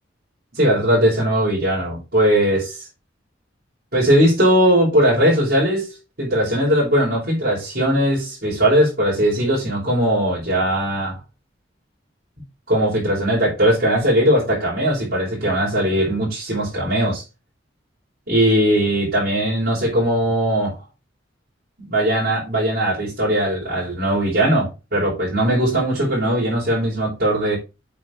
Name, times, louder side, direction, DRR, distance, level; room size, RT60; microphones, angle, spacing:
voice 1, 0.5-2.8 3.9-11.1 12.7-17.2 18.3-20.8 21.8-27.6, right 1 dB, 55° right, 4.8 m, -19 dB
8.4 x 4.7 x 3.8 m
head